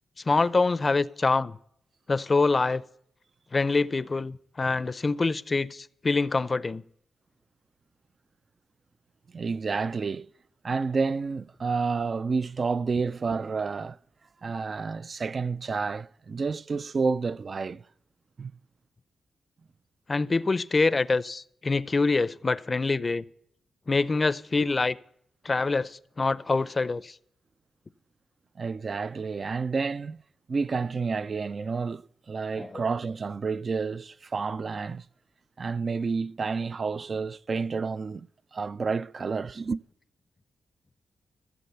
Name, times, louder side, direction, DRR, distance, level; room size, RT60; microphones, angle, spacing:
voice 1, 0.3-1.6 2.1-2.8 3.5-6.8 20.1-23.2 23.9-25.0 25.4-27.1 32.6-32.8, left 3 dB, 35° left, 0.5 m, -25 dB
voice 2, 9.3-10.3 10.6-14.0 14.4-17.8 18.4-18.5 28.6-30.2 30.5-35.0 35.6-39.8, right 4 dB, 50° right, 0.3 m, -30 dB
15.0 x 7.7 x 5.6 m
cardioid pair, 60°, 0 cm